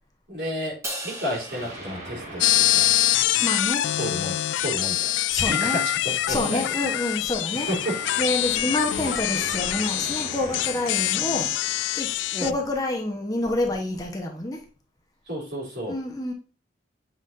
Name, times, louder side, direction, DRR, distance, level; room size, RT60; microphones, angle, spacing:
voice 1, 0.3-2.9 4.0-5.1 5.4-6.6 7.7-8.0 12.3-12.6 15.3-16.0, equal, 70° right, 3.9 m, -31 dB
Crash cymbal, 0.8-3.2, right 1 dB, 15° right, 1.2 m, -38 dB
sound 1, 1.5-4.6 7.5-12.7, right 1 dB, 40° right, 2.1 m, -41 dB
sound 2, 2.4-12.5, left 14 dB, 90° left, 0.3 m, -25 dB
voice 2, 3.4-3.9 5.3-5.8 6.3-7.7 8.2-12.1 12.4-14.6 15.9-16.3, left 1 dB, 20° left, 1.1 m, -28 dB
8.1 x 5.7 x 2.7 m
head